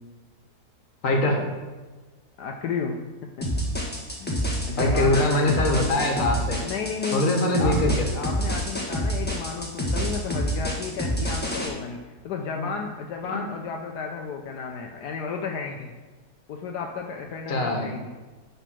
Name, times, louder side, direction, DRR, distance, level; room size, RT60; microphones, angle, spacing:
voice 1, 1.0-1.4 4.7-6.6 7.1-8.1 12.6-12.7 13.3-13.4 17.5-17.8, left 1 dB, 55° left, 2 dB, 1.7 m, -23 dB
voice 2, 2.4-3.5 4.2-4.4 4.7-5.7 6.5-16.0 16.5-18.1, left 5 dB, 80° left, 2 dB, 1.3 m, -33 dB
sound 1, 3.4-11.7, equal, 5° left, 1.3 m, -27 dB
10.0 x 4.0 x 6.1 m, 1.3 s
omnidirectional pair, 1.7 m